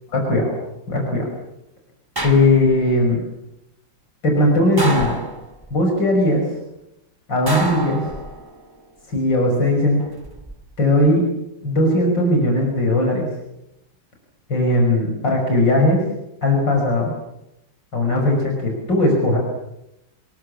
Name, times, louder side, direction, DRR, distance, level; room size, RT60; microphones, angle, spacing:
voice 1, 0.9-1.3 2.2-3.2 4.2-5.2 5.7-6.4 7.3-8.1 9.1-10.0 10.8-11.2 11.6-13.3 14.5-16.0 16.4-17.1 17.9-19.4, left 1 dB, 70° left, 1 dB, 6.6 m, -18 dB
sound 1, 2.2-2.9 4.8-5.7 7.5-8.6 10.0-10.5, right 2 dB, 10° right, 2.6 m, -28 dB
27.5 x 22.0 x 7.3 m, 0.86 s
omnidirectional pair, 2.0 m